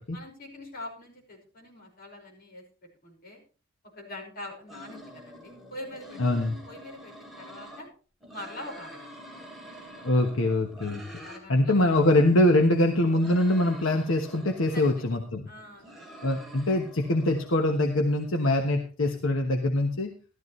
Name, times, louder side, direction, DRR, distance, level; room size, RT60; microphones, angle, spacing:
voice 1, 0.1-2.6 3.0-3.4 3.9-6.2 6.7-7.9 8.3-9.2 11.2-12.0 14.7-15.1 15.5-16.1, left 1 dB, 50° left, 0 dB, 5.4 m, -43 dB
sound 1, 4.7-7.8 8.2-11.4 11.7-15.0 15.5-17.7, equal, ahead, 3.3 m, -47 dB
voice 2, 6.2-6.6 10.0-11.0 11.5-15.5 16.2-20.1, left 1 dB, 80° left, 4 dB, 1.2 m, -23 dB
15.0 x 13.0 x 3.2 m, 0.35 s
head